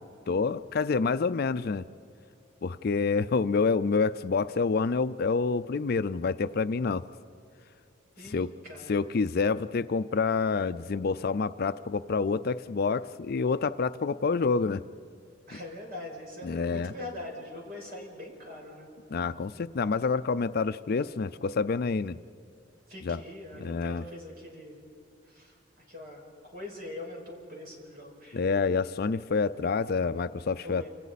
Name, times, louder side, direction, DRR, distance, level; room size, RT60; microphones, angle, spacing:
voice 1, 0.3-1.9 2.6-7.1 8.2-8.5 8.9-14.8 16.4-16.9 19.1-22.2 23.0-23.2 23.6-24.0 28.3-30.9, left 4 dB, 50° left, 13 dB, 0.4 m, -27 dB
voice 2, 8.2-9.0 15.5-18.9 22.9-24.8 25.3-25.6 25.9-28.4 30.6-30.9, left 1 dB, 50° right, -1 dB, 5.6 m, -42 dB
28.5 x 27.0 x 4.2 m, 2.6 s
head